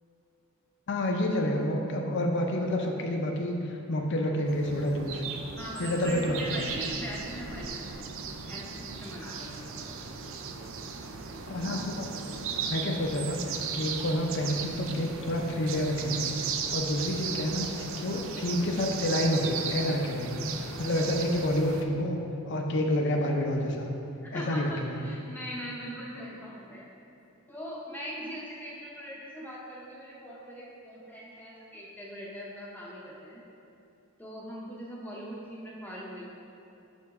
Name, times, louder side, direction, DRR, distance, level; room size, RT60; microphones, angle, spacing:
voice 1, 0.9-5.2 5.8-6.7 11.5-12.1 12.7-17.7 18.0-20.3 20.8-22.2 22.5-23.9 24.3-25.0, left 1 dB, 55° left, 2 dB, 0.6 m, -29 dB
sound 1, 4.5-21.8, right 6 dB, 60° right, 0.4 m, -36 dB
voice 2, 5.6-8.1 8.5-10.0 24.2-26.9 27.5-33.4 34.2-36.2, equal, 10° left, -5 dB, 0.6 m, -41 dB
5.9 x 4.4 x 4.1 m, 2.8 s
head